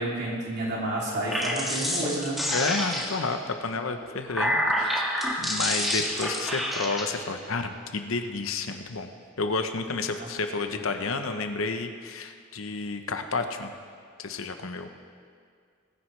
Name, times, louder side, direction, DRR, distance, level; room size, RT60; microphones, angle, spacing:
voice 1, 0.0-2.4 10.2-10.3, right 1 dB, 55° right, -4 dB, 3.1 m, -30 dB
sound 1, 1.1-3.3 4.0-7.0, equal, ahead, 1.7 m, -28 dB
voice 2, 2.5-5.1 5.4-9.1 9.4-13.7 14.2-14.9, left 3 dB, 90° left, 7 dB, 0.9 m, -31 dB
20.0 x 10.0 x 3.3 m, 2.2 s
head